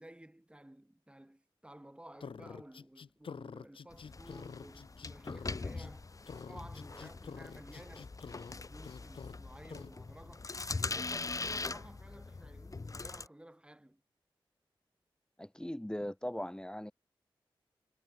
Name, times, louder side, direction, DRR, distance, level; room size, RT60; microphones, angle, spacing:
voice 1, 0.0-6.1 6.5-14.0, right 1 dB, 10° right, 4.9 m, -54 dB
sound 1, 2.2-5.9 6.3-8.6 8.8-9.4 9.7-9.9, left 6 dB, 75° left, 1.6 m, -48 dB
sound 2, 3.9-13.3, left 3 dB, 40° left, 1.0 m, -42 dB
voice 2, 15.4-16.9, left 1 dB, 10° left, 2.5 m, -39 dB
cardioid pair, 55°, 9 cm